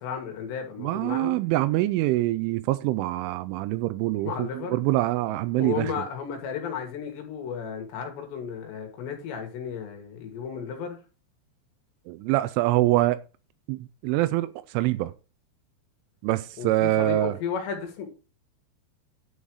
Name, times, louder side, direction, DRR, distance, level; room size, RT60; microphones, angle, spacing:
voice 1, 0.0-1.4 4.3-4.8 5.5-11.0 16.6-18.1, left 7 dB, 70° left, 3.8 m, -34 dB
voice 2, 0.8-5.9 12.1-13.2 13.7-15.1 16.2-17.4, right 17 dB, 85° right, 3.0 m, -25 dB
10.0 x 5.6 x 4.7 m
omnidirectional pair, 5.5 m